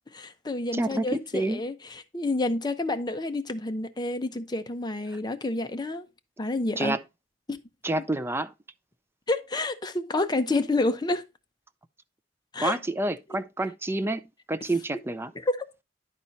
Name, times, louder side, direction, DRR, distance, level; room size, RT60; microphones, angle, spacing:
voice 1, 0.1-6.1 6.4-7.0 7.5-7.6 9.3-11.2 12.5-12.8 15.4-15.7, left 2 dB, 25° left, 0.7 m, -29 dB
voice 2, 0.7-1.6 6.8-7.0 7.8-8.5 12.6-15.3, right 2 dB, 15° right, 0.4 m, -28 dB
11.0 x 4.3 x 4.0 m
head